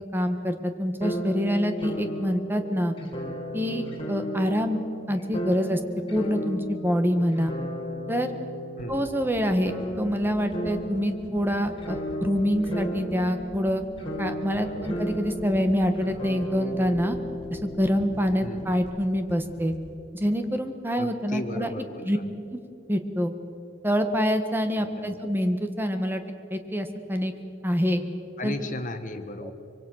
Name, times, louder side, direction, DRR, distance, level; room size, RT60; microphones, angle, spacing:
voice 1, 0.1-2.9 3.5-4.8 5.1-5.8 6.1-7.5 8.1-8.3 8.9-13.8 14.2-17.2 17.5-19.7 20.1-21.7 22.0-22.2 22.5-22.6 22.9-23.3 23.8-26.2 26.5-27.3 27.6-28.0 28.4-28.6 29.4-29.5, equal, 10° right, 7 dB, 1.6 m, -26 dB
sound 1, 1.0-18.8, equal, 30° left, 4.6 m, -35 dB
voice 2, 8.8-9.1 14.5-15.1 18.4-18.7 21.0-22.2 24.7-25.1 28.4-29.5, left 1 dB, 45° left, 7 dB, 1.6 m, -36 dB
sound 2, 8.8-21.1 21.5-21.6, equal, 80° right, 6.6 m, -47 dB
25.0 x 23.5 x 6.5 m, 2.9 s
head